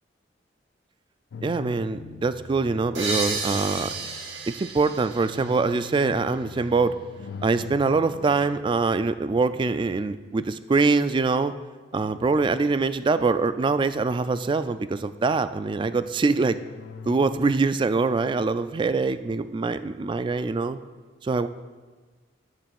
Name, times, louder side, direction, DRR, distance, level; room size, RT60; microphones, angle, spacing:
sound 1, 1.3-10.7 11.9-13.5 13.9-15.0 16.3-18.0, left 5 dB, 70° left, 0.3 m, -44 dB
voice 1, 1.4-3.9 4.5-7.0 7.4-11.5 11.9-16.6 17.1-20.8 21.2-21.5, right 4 dB, 25° right, 13 dB, 0.3 m, -24 dB
sound 2, 2.9-6.5, right 3 dB, 85° right, 1.5 m, -33 dB
11.5 x 3.9 x 7.6 m, 1.4 s
head